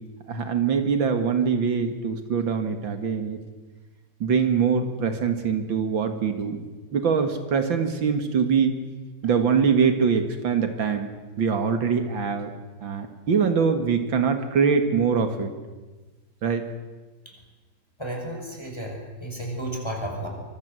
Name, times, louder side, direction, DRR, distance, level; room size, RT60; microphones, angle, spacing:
voice 1, 0.3-3.4 4.2-6.6 6.9-8.8 9.2-11.1 11.4-12.5 12.8-15.5 16.4-16.7, right 6 dB, 80° right, 7 dB, 2.6 m, -23 dB
voice 2, 18.0-20.3, right 1 dB, 15° left, 1 dB, 5.7 m, -33 dB
25.5 x 23.5 x 7.8 m, 1.3 s
omnidirectional pair, 2.1 m